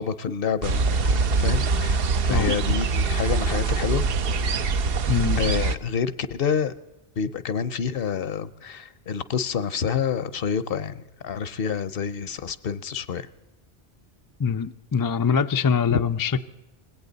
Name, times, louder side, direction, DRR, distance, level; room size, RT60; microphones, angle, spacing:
voice 1, 0.0-4.1 5.4-6.7 7.2-13.3 15.9-16.0, left 7 dB, 65° left, 15 dB, 0.9 m, -28 dB
sound 1, 0.6-5.8, right 4 dB, 65° right, 0.9 m, -23 dB
voice 2, 5.1-5.4 14.4-16.4, left 6 dB, 30° left, 9 dB, 0.4 m, -23 dB
20.0 x 17.5 x 4.0 m, 0.97 s
omnidirectional pair, 1.1 m